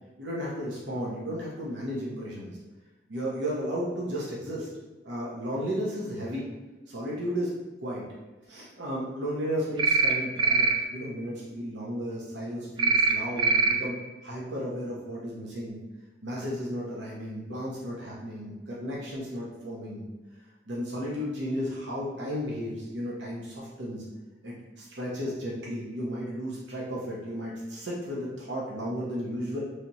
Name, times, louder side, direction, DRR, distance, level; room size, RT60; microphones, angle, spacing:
voice 1, 0.2-2.5 3.1-4.7 5.0-6.4 6.9-7.5 7.8-8.0 8.5-14.0 14.2-15.8 16.2-20.1 20.7-24.0 24.4-29.6, equal, 75° right, -5 dB, 0.9 m, -34 dB
sound 1, 9.8-10.1 10.4-10.7 12.8-13.1 13.4-13.7, right 4 dB, 25° right, 0.4 m, -22 dB
3.3 x 2.9 x 4.1 m, 1.2 s
head